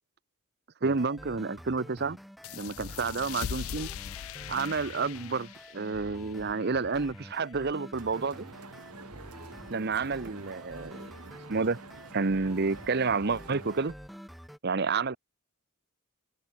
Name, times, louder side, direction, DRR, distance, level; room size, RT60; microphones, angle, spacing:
sound 1, 0.8-14.6, equal, ahead, 1.3 m, -48 dB
voice 1, 0.8-2.2 2.5-3.9 4.5-8.5 9.7-11.1 11.5-11.8 12.1-13.9 14.6-15.2, right 4 dB, 45° right, 0.8 m, -30 dB
sound 2, 2.4-7.7, left 9 dB, 70° left, 0.4 m, -41 dB
sound 3, 8.0-13.9, right 3 dB, 85° right, 2.8 m, -48 dB
open air
head